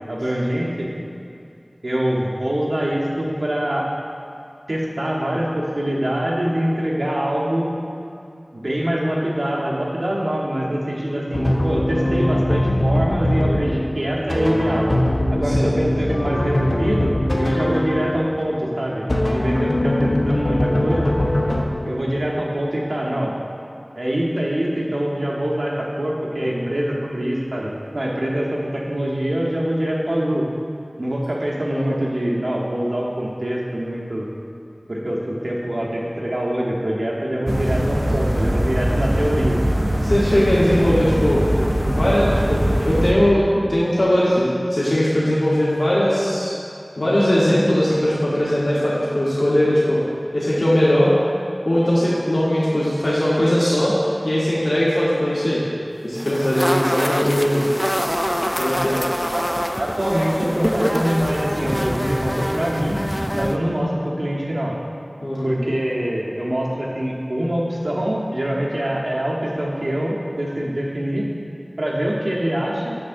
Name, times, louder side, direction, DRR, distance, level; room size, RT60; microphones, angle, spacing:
voice 1, 0.1-0.9 1.8-3.9 4.7-7.8 8.5-14.9 15.3-21.2 21.8-23.4 24.0-30.4 31.0-34.3 34.9-39.6 59.3-59.4 59.8-63.0 63.3-64.8 65.4-71.3 71.8-73.0, equal, 85° right, -4 dB, 1.0 m, -24 dB
sound 1, 11.3-18.3 19.1-21.6, left 1 dB, 65° left, 0.8 m, -21 dB
voice 2, 19.8-20.1 26.4-26.7 31.7-32.0 38.2-38.3 40.0-41.4 41.9-43.4 43.7-46.5 47.0-50.0 50.3-51.1 51.6-53.9 54.2-55.6 56.0-57.6 58.5-59.0 65.2-65.5, equal, 80° left, -9 dB, 1.1 m, -19 dB
sound 2, 37.5-43.1, equal, 45° right, 0.7 m, -21 dB
sound 3, 56.2-63.6, equal, ahead, 0.3 m, -25 dB
9.3 x 6.7 x 2.6 m, 2.5 s
wide cardioid pair, 45°, 0 cm